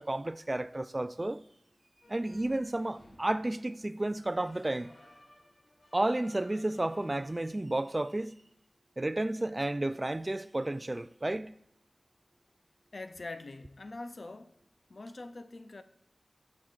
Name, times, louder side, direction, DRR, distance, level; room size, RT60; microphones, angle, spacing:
voice 1, 0.0-1.4 2.1-4.9 5.9-8.3 9.0-11.5, right 1 dB, 30° right, 0.4 m, -32 dB
sound 1, 2.0-7.4, left 1 dB, 80° left, 2.8 m, -58 dB
voice 2, 12.9-14.5 14.9-15.8, left 2 dB, 60° left, 0.5 m, -43 dB
17.5 x 7.4 x 2.5 m
wide cardioid pair, 60°, 0 cm